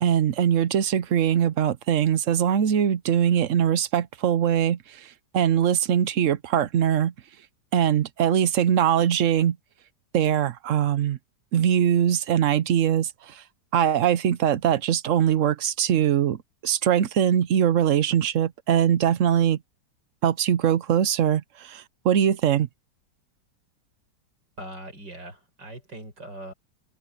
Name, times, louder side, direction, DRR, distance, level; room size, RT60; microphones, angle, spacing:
voice 1, 0.0-4.8 5.3-7.1 7.7-9.5 10.1-11.2 11.5-13.1 13.7-16.4 16.6-19.6 20.2-21.4 21.7-22.7, right 9 dB, 60° right, 0.9 m, -22 dB
voice 2, 24.6-26.5, right 1 dB, 90° right, 7.2 m, -40 dB
open air
omnidirectional pair, 1.9 m